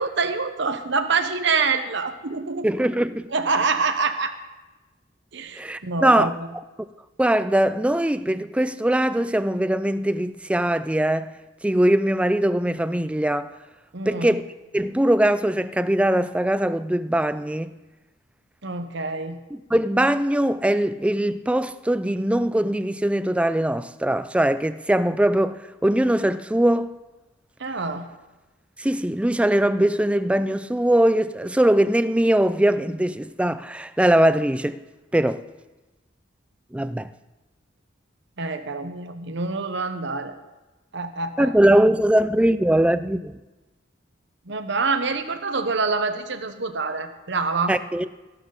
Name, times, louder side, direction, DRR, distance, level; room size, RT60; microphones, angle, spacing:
voice 1, 0.0-2.7 3.3-4.3 5.3-6.5 13.9-14.4 18.6-19.4 27.6-28.1 38.4-40.4 40.9-41.5 44.4-47.8, right 4 dB, 65° right, 1.0 m, -26 dB
voice 2, 2.6-3.3 5.6-6.3 7.2-11.3 11.6-13.5 14.1-14.4 14.7-17.7 19.5-26.9 28.8-34.8 35.1-35.4 36.7-37.1 41.4-43.4 47.7-48.3, right 1 dB, 5° right, 0.3 m, -21 dB
14.0 x 12.0 x 4.0 m
head